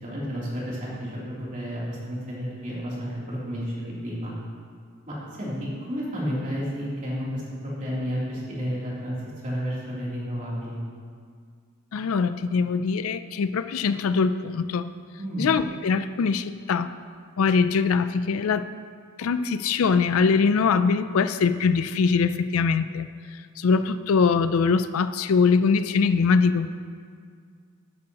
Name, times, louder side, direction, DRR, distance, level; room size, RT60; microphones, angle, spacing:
voice 1, 0.0-4.3 5.1-5.5 5.9-9.1 9.4-10.8 15.2-15.5, equal, 35° right, -7 dB, 3.1 m, -31 dB
voice 2, 11.9-14.9 15.4-16.9 17.4-18.7 19.2-26.7, left 5 dB, 70° left, 11 dB, 0.4 m, -22 dB
12.5 x 10.5 x 2.9 m, 2.1 s
head